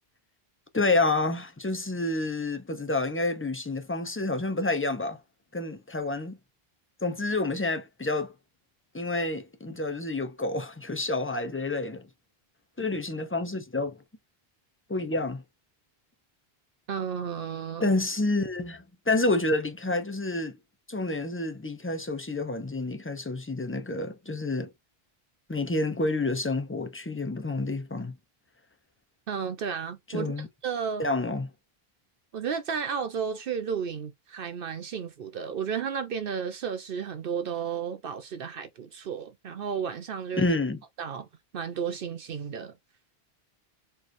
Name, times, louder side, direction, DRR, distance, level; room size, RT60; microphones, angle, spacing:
voice 1, 0.7-5.2 5.5-6.4 7.0-8.3 8.9-12.0 12.8-14.0 14.9-15.4 17.8-20.6 20.9-24.7 25.5-28.1 30.1-30.5 31.0-31.5 40.4-40.8, left 2 dB, 15° left, 0.5 m, -29 dB
voice 2, 16.9-17.9 29.3-31.1 32.3-40.4 41.0-41.3 41.5-42.7, right 7 dB, 65° right, 0.8 m, -33 dB
4.4 x 3.1 x 2.6 m
omnidirectional pair, 1.0 m